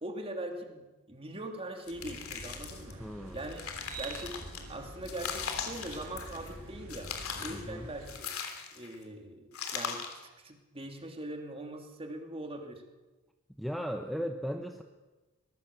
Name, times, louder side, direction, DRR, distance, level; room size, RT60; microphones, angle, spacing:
voice 1, 0.0-3.0 3.3-3.6 4.0-7.1 7.4-8.3 8.7-12.8, right 1 dB, 25° right, 4 dB, 2.8 m, -41 dB
sound 1, 1.8-2.9 3.3-4.6 5.0-6.5 6.9-7.6 8.1-8.9 9.5-10.2, left 6 dB, 70° left, 3.3 m, -39 dB
sound 2, 1.9-8.1, right 2 dB, 85° right, 7.0 m, -46 dB
voice 2, 3.0-3.4 7.5-7.9 13.6-14.8, equal, ahead, 5 dB, 1.0 m, -36 dB
23.5 x 19.5 x 6.9 m, 1.2 s
head